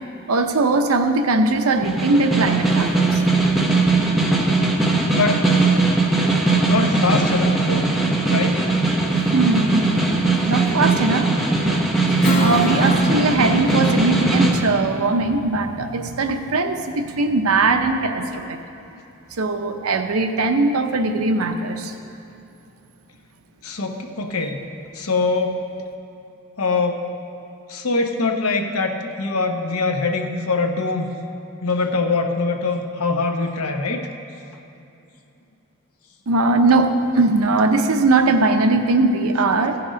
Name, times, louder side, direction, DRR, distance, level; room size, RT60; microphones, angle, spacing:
voice 1, 0.3-3.2 3.5-3.6 9.3-11.3 11.6-11.8 12.1-18.6 19.4-21.9 36.3-39.8, right 3 dB, 85° right, 6 dB, 0.7 m, -20 dB
Snare drum, 1.8-14.6, right 3 dB, ahead, 0.8 m, -19 dB
voice 2, 5.1-5.5 6.6-7.9 8.2-8.6 23.6-24.6 24.9-25.6 26.6-27.0 27.7-31.1 31.6-34.1, left 3 dB, 85° left, 4 dB, 0.9 m, -23 dB
Strum, 12.2-17.1, left 2 dB, 35° left, 0.9 m, -29 dB
15.0 x 5.9 x 5.1 m, 2.7 s
head